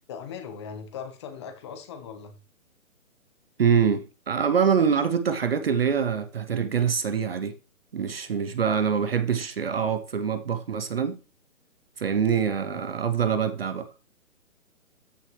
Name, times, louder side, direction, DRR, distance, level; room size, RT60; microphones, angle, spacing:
voice 1, 0.1-2.3 8.7-8.8 12.6-12.9 13.2-13.4, left 7 dB, 20° left, 1.1 m, -39 dB
voice 2, 3.6-7.6 7.9-11.2 12.0-13.9, right 7 dB, 45° right, 0.6 m, -25 dB
13.5 x 6.1 x 3.1 m
hypercardioid pair, 160°, 42 cm